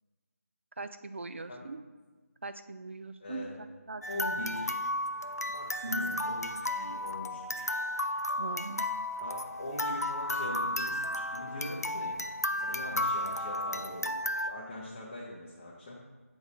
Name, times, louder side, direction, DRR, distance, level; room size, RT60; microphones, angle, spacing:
voice 1, 0.8-1.8 2.4-3.5 3.9-4.2 5.8-6.2 8.4-8.9, right 3 dB, 50° right, 10 dB, 0.4 m, -40 dB
voice 2, 3.2-3.5 4.1-4.8 5.5-7.7 9.2-12.2 12.5-14.2 14.5-16.0, left 1 dB, 15° left, -6 dB, 0.5 m, -41 dB
sound 1, 4.0-14.5, left 1 dB, 85° left, 0.4 m, -33 dB
8.7 x 4.8 x 2.6 m, 1.3 s
figure-of-eight pair, 160°, 8 cm